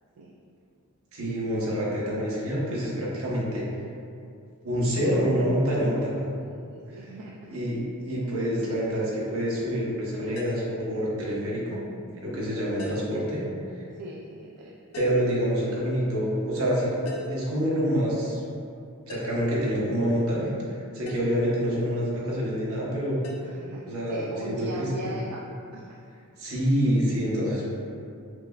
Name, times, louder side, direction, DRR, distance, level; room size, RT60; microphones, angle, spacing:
voice 1, 1.1-3.6 4.6-6.1 7.5-11.8 12.2-13.4 14.9-18.4 19.1-23.2 23.8-25.1 26.4-27.7, equal, 65° right, -6 dB, 0.9 m, -27 dB
voice 2, 6.7-7.6 7.9-8.0 13.9-14.8 23.4-25.5 25.7-26.0, right 2 dB, 85° right, -3 dB, 0.3 m, -39 dB
sound 1, 10.4-10.7 12.8-13.2 14.9-15.3 17.1-17.5 19.1-19.5 21.1-21.3 23.2-23.4, left 1 dB, 65° left, 0.5 m, -40 dB
6.2 x 2.1 x 2.3 m, 2.4 s
head